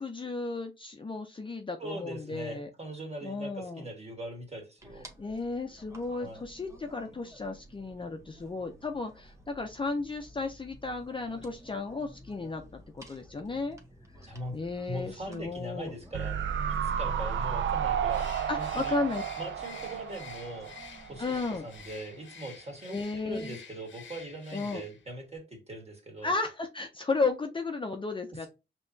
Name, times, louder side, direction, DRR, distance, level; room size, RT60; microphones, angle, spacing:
voice 1, 0.0-2.7 3.2-3.8 5.2-13.8 14.2-15.9 18.5-19.2 21.2-21.6 22.8-23.6 24.5-24.8 26.2-28.5, left 3 dB, 25° left, 5 dB, 0.5 m, -34 dB
voice 2, 1.8-5.1 6.2-6.4 14.2-14.6 14.9-16.4 16.7-18.3 18.6-19.0 19.4-23.0 23.2-26.3, right 1 dB, 35° right, 1 dB, 1.7 m, -41 dB
sound 1, 4.8-21.9, equal, 15° right, 1.0 m, -54 dB
sound 2, 16.1-21.4 21.7-21.8, right 8 dB, 85° right, 0.5 m, -32 dB
Bird, 18.1-25.1, left 6 dB, 90° left, 0.8 m, -49 dB
5.4 x 3.0 x 2.7 m, 0.26 s
wide cardioid pair, 115°, 19 cm